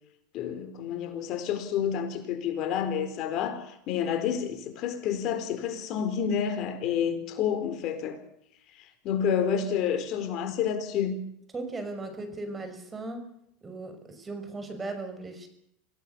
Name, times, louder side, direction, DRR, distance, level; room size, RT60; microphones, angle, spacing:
voice 1, 0.3-8.2 8.8-11.2, left 8 dB, 55° left, 4.1 m, -29 dB
voice 2, 11.5-13.3 13.6-15.5, right 2 dB, 20° right, 5.9 m, -37 dB
27.0 x 16.5 x 6.9 m
supercardioid pair, 105°, 0 cm